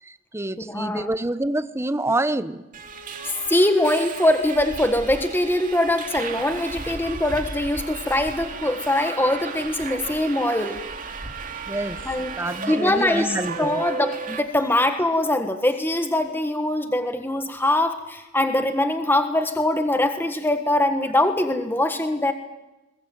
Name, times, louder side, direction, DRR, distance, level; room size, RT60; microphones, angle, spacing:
voice 1, 0.1-2.6 11.7-12.0 12.4-13.8, right 1 dB, 10° right, 13 dB, 0.9 m, -27 dB
voice 2, 0.6-1.1 3.5-10.8 12.0-12.3 12.7-22.3, left 1 dB, 10° left, 7 dB, 1.5 m, -22 dB
Subway metro underground, 2.7-14.4, right 4 dB, 40° right, 2.6 m, -34 dB
22.0 x 21.0 x 9.3 m, 1.0 s
head